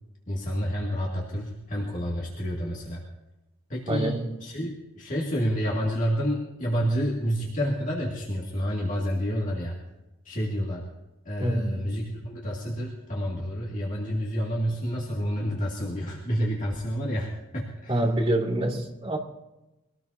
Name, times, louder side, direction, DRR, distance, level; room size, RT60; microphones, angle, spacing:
voice 1, 0.3-3.0 3.7-9.7 10.2-10.8 11.3-18.0, equal, 40° left, -4 dB, 2.1 m, -29 dB
voice 2, 3.9-4.3 11.4-11.9 17.9-19.2, right 1 dB, 30° right, -2 dB, 2.3 m, -26 dB
23.0 x 18.0 x 2.8 m, 0.99 s
head